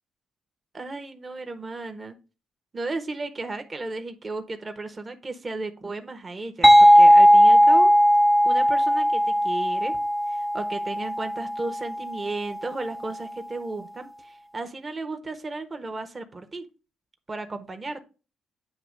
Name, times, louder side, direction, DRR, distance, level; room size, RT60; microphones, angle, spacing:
voice 1, 0.7-2.2 2.7-7.9 8.4-10.0 10.3-16.6 17.3-18.0, right 3 dB, 30° right, 7 dB, 1.0 m, -34 dB
sound 1, 6.6-12.1, equal, ahead, 0.4 m, -17 dB
8.6 x 2.9 x 6.4 m, 0.33 s
cardioid pair, 90°, 0 cm